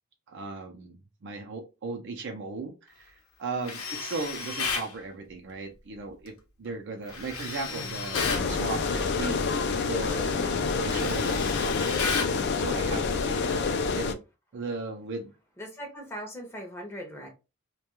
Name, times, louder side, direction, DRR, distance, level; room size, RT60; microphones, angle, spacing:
voice 1, 0.3-10.5 10.8-14.2 14.5-15.3, right 3 dB, 55° right, 3 dB, 0.5 m, -37 dB
Tools, 3.6-4.9 7.1-8.5 10.0-10.2 10.5-12.4, left 5 dB, 85° left, 0.7 m, -33 dB
sound 1, 8.1-14.1, left 4 dB, 50° left, 0.3 m, -27 dB
voice 2, 15.6-17.3, equal, 10° left, 1 dB, 0.6 m, -40 dB
2.2 x 2.2 x 2.9 m, 0.28 s
head